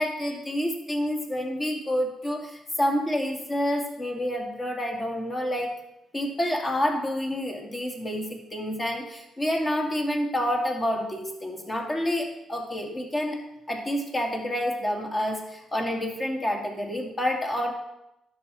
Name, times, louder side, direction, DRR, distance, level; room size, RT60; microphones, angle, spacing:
voice 1, 0.0-5.7 6.1-13.4 13.7-17.7, equal, 25° left, 2 dB, 2.0 m, -28 dB
11.0 x 6.3 x 4.1 m, 0.86 s
cardioid pair, 90°, 0 cm